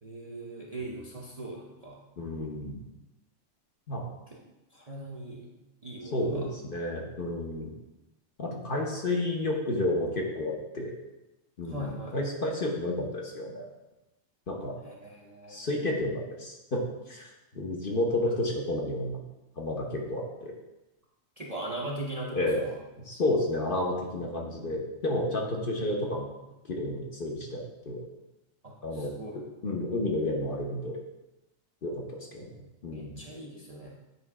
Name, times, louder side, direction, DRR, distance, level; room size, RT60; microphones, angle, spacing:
voice 1, 0.0-2.0 4.3-4.4 4.7-5.5 5.8-6.5 11.6-12.2 14.8-15.6 21.4-22.8 28.6-29.4 32.9-33.9, right 1 dB, 35° right, -3 dB, 0.7 m, -40 dB
voice 2, 2.2-2.8 3.9-4.1 6.1-7.7 8.4-10.9 11.6-13.7 14.5-14.7 15.5-16.8 17.1-19.2 19.6-20.5 22.3-22.6 23.0-26.3 26.7-28.0 28.8-29.1 29.6-31.0 31.8-33.2, left 1 dB, 45° left, -1 dB, 0.9 m, -31 dB
8.2 x 3.1 x 4.7 m, 1.0 s
omnidirectional pair, 1.4 m